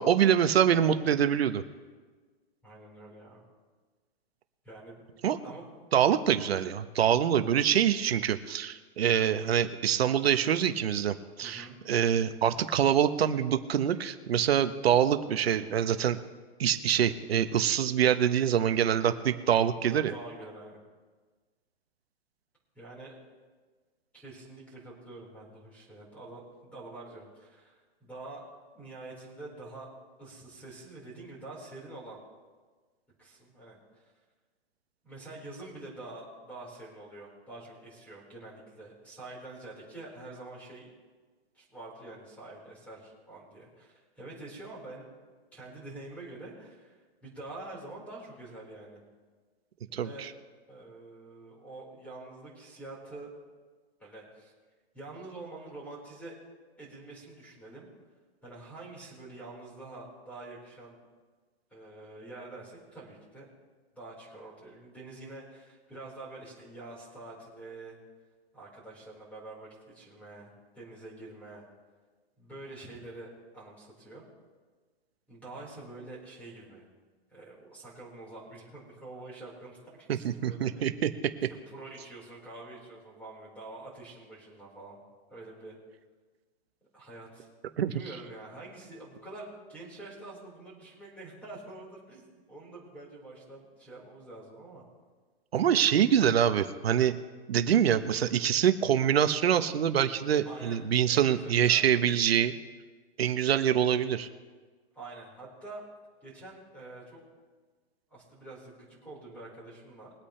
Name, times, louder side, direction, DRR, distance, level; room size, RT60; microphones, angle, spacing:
voice 1, 0.0-1.6 5.2-5.4 5.9-16.2 16.6-20.1 49.9-50.3 80.1-81.1 87.8-87.9 95.5-97.1 97.5-102.5 103.2-104.3, right 9 dB, 70° right, 9 dB, 1.2 m, -25 dB
voice 2, 2.6-3.4 4.6-5.0 5.4-5.8 11.4-11.8 19.7-20.8 22.7-23.2 24.1-28.4 28.7-29.9 30.2-32.2 33.2-34.0 35.0-40.9 41.5-45.1 45.5-49.0 50.0-50.3 50.7-53.3 54.0-54.5 54.9-56.4 56.8-57.9 58.4-61.0 61.7-63.5 63.9-68.0 68.5-71.6 72.4-74.2 75.3-76.9 77.3-81.2 81.7-85.0 85.3-85.7 86.9-87.5 87.9-94.8 95.9-96.1 100.4-100.8 101.0-101.9 104.9-105.8 106.2-107.2 108.1-110.1, right 2 dB, 5° left, -4 dB, 4.6 m, -46 dB
22.5 x 8.7 x 3.3 m, 1.4 s
hypercardioid pair, 160°, 32 cm